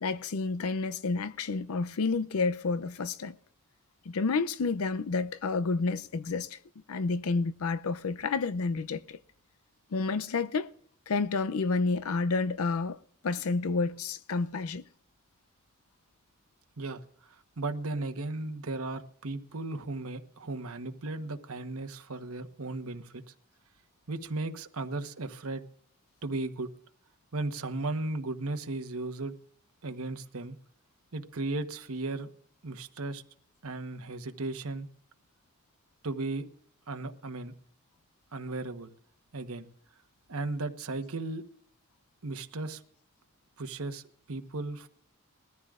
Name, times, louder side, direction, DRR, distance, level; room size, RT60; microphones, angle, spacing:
voice 1, 0.0-3.3 4.1-6.6 6.9-9.2 9.9-10.7 11.1-13.0 13.2-14.8, left 4 dB, 80° left, 0.5 m, -30 dB
voice 2, 16.8-23.2 24.1-25.6 26.2-26.7 27.3-29.3 29.8-30.6 31.1-32.3 32.6-33.2 33.6-34.9 36.0-36.4 36.9-37.5 38.3-38.9 39.3-39.7 40.3-41.4 42.2-42.8 43.6-44.9, right 2 dB, 80° right, 1.2 m, -36 dB
21.5 x 14.0 x 2.5 m
head